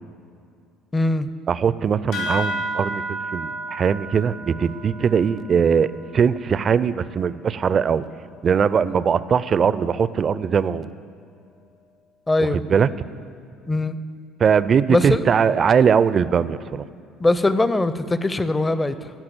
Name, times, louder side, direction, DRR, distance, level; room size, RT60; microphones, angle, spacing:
voice 1, 0.9-1.3 12.3-12.6 13.7-14.0 14.9-15.2 17.2-19.1, left 2 dB, 20° left, 13 dB, 0.5 m, -21 dB
voice 2, 1.5-8.0 8.4-10.9 12.5-12.9 14.4-16.9, right 7 dB, 40° right, 16 dB, 0.4 m, -20 dB
sound 1, 2.1-7.1, right 1 dB, 65° left, 2.7 m, -32 dB
13.5 x 5.9 x 7.7 m, 2.4 s
figure-of-eight pair, 55°, 0 cm